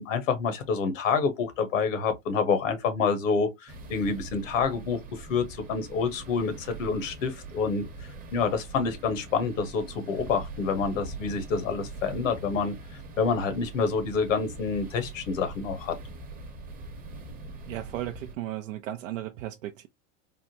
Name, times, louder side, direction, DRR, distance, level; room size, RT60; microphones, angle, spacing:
voice 1, 0.0-7.8 8.3-12.7 13.2-15.9, left 5 dB, 80° left, 1.1 m, -27 dB
sound 1, 3.7-18.3, right 2 dB, 20° right, 0.8 m, -43 dB
voice 2, 17.7-19.9, right 13 dB, 90° right, 0.5 m, -35 dB
3.5 x 2.1 x 2.7 m
hypercardioid pair, 125°, 38 cm